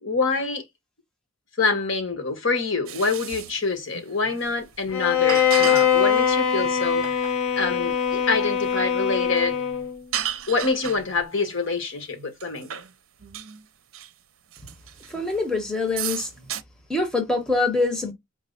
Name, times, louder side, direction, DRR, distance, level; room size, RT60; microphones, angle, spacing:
voice 1, 0.0-0.6 1.6-7.1 7.5-9.6 10.5-12.7, left 4 dB, 65° left, 1.3 m, -26 dB
sound 1, 2.9-3.6 3.9-4.7 5.3-5.9 6.6-7.4 7.9-8.0 8.3-8.4 8.6-8.8 9.3-11.1 11.5-11.6 12.2-12.9 13.2-13.6 13.9-14.1 14.5-15.5 15.8-16.6, right 10 dB, 75° right, 0.6 m, -34 dB
Bowed string instrument, 4.9-10.0, left 8 dB, 85° left, 0.9 m, -22 dB
voice 2, 15.1-16.3 16.9-18.1, left 3 dB, 5° left, 1.0 m, -24 dB
4.6 x 2.1 x 3.9 m
head